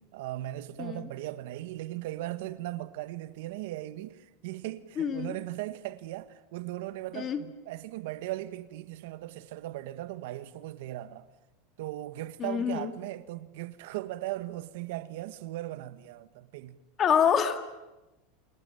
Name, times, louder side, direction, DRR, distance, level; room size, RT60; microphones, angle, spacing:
voice 1, 0.0-11.3 11.8-16.8, right 15 dB, 65° right, 1.4 m, -38 dB
voice 2, 5.0-5.3 7.1-7.4 12.4-12.9 17.0-17.6, left 8 dB, 25° left, 1.9 m, -26 dB
29.0 x 21.0 x 9.2 m
supercardioid pair, 165°, 0 cm